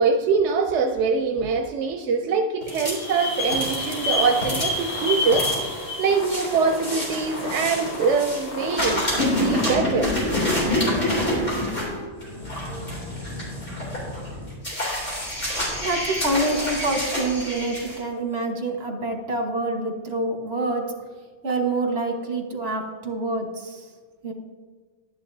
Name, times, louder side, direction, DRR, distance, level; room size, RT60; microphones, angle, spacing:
voice 1, 0.0-5.5 6.0-10.1, right 5 dB, 90° right, 4 dB, 0.9 m, -23 dB
sound 1, 2.6-8.5 8.7-18.0, left 1 dB, 50° left, 3.3 m, -27 dB
sound 2, 3.4-9.7, left 1 dB, 80° left, 1.8 m, -36 dB
voice 2, 15.4-20.9 21.4-23.9 24.2-24.3, right 2 dB, 65° right, 2 dB, 1.6 m, -27 dB
11.0 x 9.9 x 2.7 m, 1.5 s
omnidirectional pair, 1.2 m